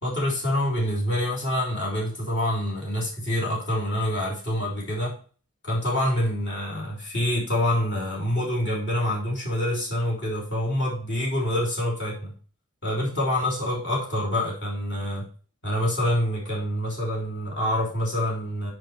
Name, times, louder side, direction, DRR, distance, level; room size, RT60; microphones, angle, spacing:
voice 1, 0.0-5.2 5.6-12.3 12.8-15.3 15.6-18.7, left 1 dB, 55° left, -4 dB, 3.3 m, -26 dB
8.9 x 5.1 x 4.4 m, 0.40 s
head